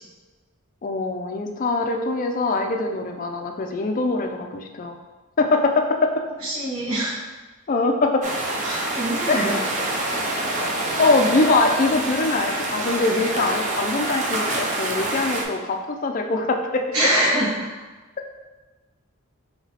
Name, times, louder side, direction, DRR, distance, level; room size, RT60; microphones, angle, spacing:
voice 1, 0.8-5.0 5.4-6.1 7.7-8.2 9.3-9.6 11.0-16.9, left 3 dB, 40° left, 4 dB, 0.3 m, -22 dB
voice 2, 6.4-7.2 8.6-9.6 16.9-17.7, right 1 dB, 75° right, -6 dB, 1.3 m, -24 dB
sound 1, 8.2-15.5, right 2 dB, 35° right, 0.4 m, -26 dB
sound 2, 10.6-10.7 11.0-11.1 11.4-11.5 11.9-12.0 12.3-12.6 12.9-13.1 13.4-13.6 14.0-14.1 14.5-14.7 15.0-15.2, equal, 10° left, 1.1 m, -35 dB
4.9 x 2.9 x 2.8 m, 1.2 s
head